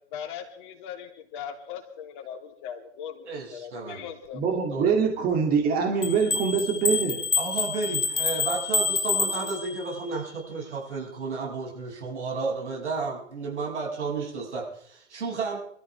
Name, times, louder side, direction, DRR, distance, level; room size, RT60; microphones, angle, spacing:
voice 1, 0.1-4.9, left 8 dB, 45° left, 3 dB, 3.2 m, -40 dB
voice 2, 3.2-4.1 4.7-4.9 7.4-15.6, right 4 dB, 70° right, -2 dB, 7.3 m, -32 dB
voice 3, 4.3-7.2, right 6 dB, 25° right, 2 dB, 2.8 m, -24 dB
sound 1, 6.0-10.0, left 5 dB, 85° left, 1.4 m, -27 dB
24.5 x 13.5 x 3.6 m, 0.65 s
figure-of-eight pair, 115°, 36 cm